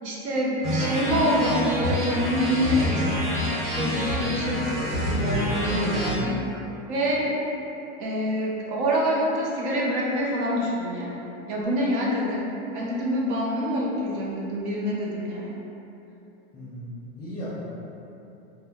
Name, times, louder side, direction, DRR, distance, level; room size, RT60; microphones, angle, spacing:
voice 1, 0.0-6.4 6.9-7.4 8.0-15.6, equal, 70° right, -4 dB, 0.8 m, -26 dB
sound 1, 0.6-6.2, left 1 dB, 90° right, 1.3 m, -27 dB
voice 2, 16.5-17.6, equal, 15° left, -10 dB, 0.5 m, -36 dB
2.8 x 2.2 x 3.5 m, 2.9 s
supercardioid pair, 150°, 35 cm